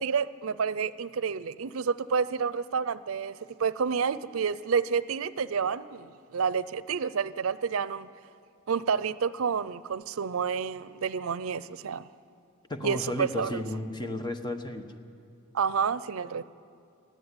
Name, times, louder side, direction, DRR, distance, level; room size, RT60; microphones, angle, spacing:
voice 1, 0.0-8.1 8.7-12.1 12.8-13.6 15.5-16.4, right 6 dB, 90° right, 17 dB, 0.5 m, -29 dB
voice 2, 12.7-14.9, left 2 dB, 20° left, 6 dB, 1.1 m, -33 dB
20.0 x 14.0 x 9.8 m, 2.4 s
head